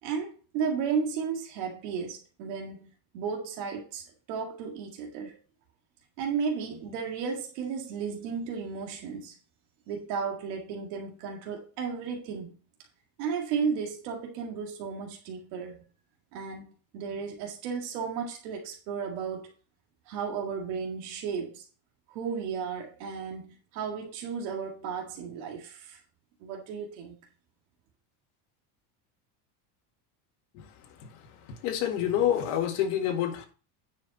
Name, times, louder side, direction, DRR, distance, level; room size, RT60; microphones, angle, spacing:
voice 1, 0.0-5.3 6.2-9.4 9.9-12.6 13.2-15.8 16.3-19.5 20.1-21.6 22.1-26.0 26.4-27.1, right 6 dB, 65° right, 2.0 m, -34 dB
voice 2, 31.5-33.5, left 10 dB, 70° left, 2.0 m, -28 dB
9.8 x 5.8 x 4.1 m
cardioid pair, 175°, 48 cm